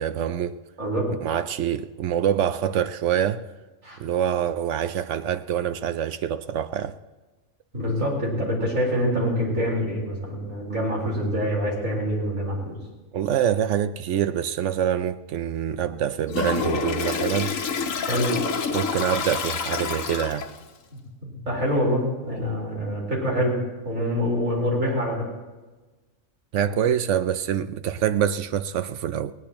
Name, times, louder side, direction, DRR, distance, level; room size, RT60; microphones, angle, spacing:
voice 1, 0.0-0.6 1.2-3.4 4.0-6.9 13.1-17.6 18.7-20.5 26.5-29.3, right 9 dB, 70° right, 0.9 m, -25 dB
voice 2, 7.7-12.8 18.1-18.3 20.9-23.6 23.8-25.3, equal, 85° right, 4.7 m, -25 dB
Toilet flush, 16.3-20.7, left 5 dB, 80° left, 1.4 m, -27 dB
19.0 x 18.5 x 3.0 m
omnidirectional pair, 1.3 m